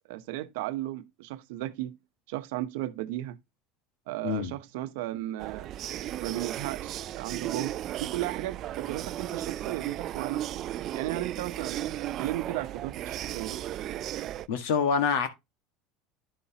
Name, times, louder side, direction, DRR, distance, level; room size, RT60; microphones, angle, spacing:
voice 1, 0.1-2.0 2.3-3.4 4.1-5.7 6.2-10.5 10.9-13.6, right 15 dB, 85° right, 0.9 m, -35 dB
sound 1, 5.4-14.5, right 12 dB, 40° right, 0.4 m, -35 dB
voice 2, 14.5-15.3, left 6 dB, 85° left, 1.6 m, -26 dB
10.5 x 5.7 x 2.9 m
cardioid pair, 150°, 0 cm